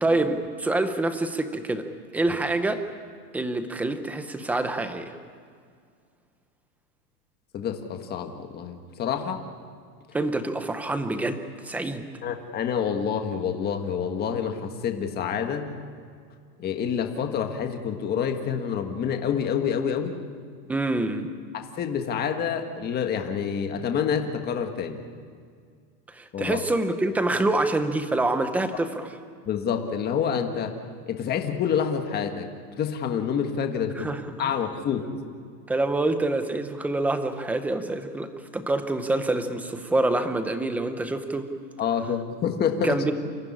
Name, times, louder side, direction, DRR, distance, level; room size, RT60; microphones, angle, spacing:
voice 1, 0.0-1.9 2.1-2.8 3.3-5.2 10.1-12.1 20.7-21.3 26.1-29.1 34.0-34.5 35.7-41.5 42.8-43.1, right 2 dB, 5° right, 8 dB, 0.6 m, -26 dB
voice 2, 7.5-9.4 12.2-15.7 16.6-20.1 21.5-25.0 26.3-26.6 29.5-30.7 31.1-32.5 32.8-34.1 34.4-35.0 41.8-43.0, left 7 dB, 20° left, 5 dB, 1.6 m, -27 dB
28.0 x 14.5 x 9.9 m, 2.1 s
supercardioid pair, 160°, 49 cm